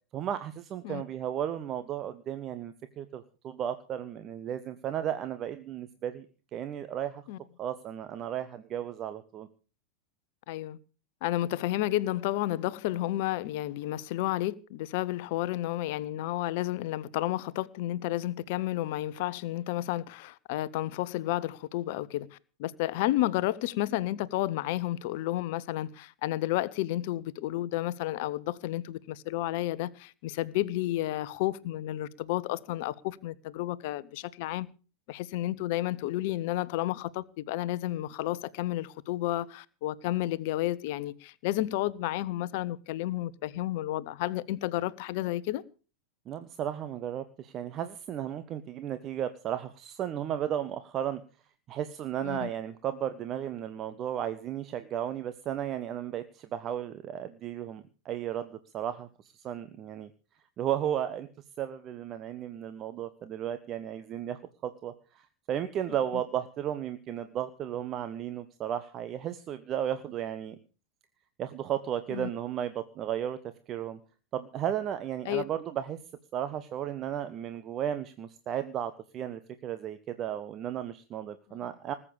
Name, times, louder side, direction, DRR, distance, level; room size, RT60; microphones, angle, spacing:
voice 1, 0.1-6.2 6.5-7.2 7.6-9.5 46.3-51.2 51.7-60.1 60.6-61.3 61.6-70.6 71.4-73.4 73.7-74.0 74.3-76.0 76.3-81.9, right 10 dB, 30° right, 1.3 m, -34 dB
voice 2, 10.5-10.8 11.2-22.3 22.6-34.7 35.1-45.6 52.2-52.5 72.1-72.3 75.3-75.4, left 15 dB, 50° left, 1.0 m, -31 dB
20.0 x 8.6 x 7.1 m
figure-of-eight pair, 90°, 0 cm